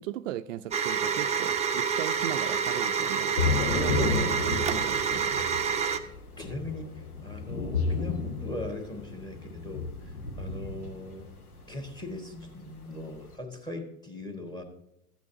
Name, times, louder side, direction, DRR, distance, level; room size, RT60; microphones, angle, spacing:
voice 1, 0.0-5.4, right 12 dB, 60° right, 10 dB, 0.5 m, -37 dB
sound 1, 0.7-6.0, right 6 dB, 15° right, 0.6 m, -28 dB
Thunder / Rain, 3.4-13.3, left 4 dB, 85° left, 1.2 m, -32 dB
voice 2, 5.9-9.9 10.4-11.4 11.7-14.6, left 2 dB, 10° left, 4 dB, 1.7 m, -40 dB
13.5 x 8.4 x 2.8 m, 0.82 s
figure-of-eight pair, 85°, 43 cm